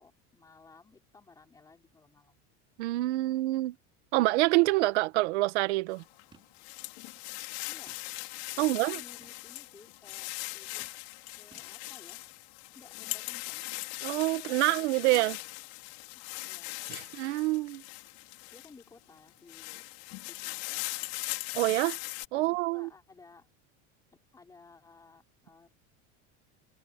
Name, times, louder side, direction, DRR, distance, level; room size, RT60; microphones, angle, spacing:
voice 1, 0.0-2.5 7.7-7.9 8.5-10.8 11.4-12.2 12.7-13.7 14.3-15.4 16.1-16.9 18.5-19.9 20.3-21.1 22.3-23.5 24.3-25.7, left 4 dB, 10° left, 5.0 m, -57 dB
voice 2, 2.8-3.8 4.1-6.0 8.6-9.0 14.0-15.4 16.9-17.8 21.5-22.0 22.3-22.9, right 20 dB, 85° right, 1.7 m, -27 dB
sound 1, 4.7-4.9 5.3-5.4 6.3-6.7 7.1-7.2 7.9-8.4 9.2-9.4 10.8-11.3 11.5-11.7, right 5 dB, 15° right, 5.9 m, -60 dB
sound 2, 6.0-18.8 19.3-22.3, left 26 dB, 70° left, 5.6 m, -40 dB
cardioid pair, 175°, 34 cm